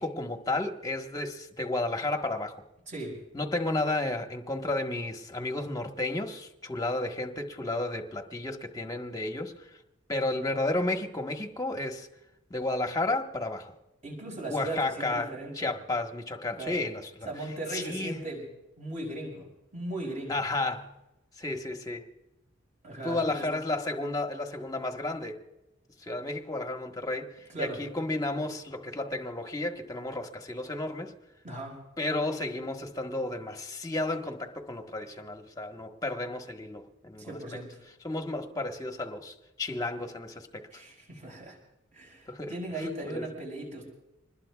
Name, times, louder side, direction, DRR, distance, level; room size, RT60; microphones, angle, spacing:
voice 1, 0.0-2.6 3.3-9.7 10.1-12.1 12.5-13.7 14.5-17.3 17.7-18.2 20.3-20.9 21.4-22.0 23.0-25.4 26.0-31.1 32.0-37.4 38.0-40.6 42.3-43.2, left 2 dB, 20° left, 1.4 m, -32 dB
voice 2, 2.9-3.2 14.0-15.7 16.6-16.8 17.3-18.5 18.8-19.5 19.7-20.4 22.8-23.5 27.5-27.8 31.4-31.8 37.2-37.8 40.7-41.6 41.9-43.9, right 1 dB, 35° right, 5.8 m, -38 dB
25.5 x 20.5 x 2.4 m
head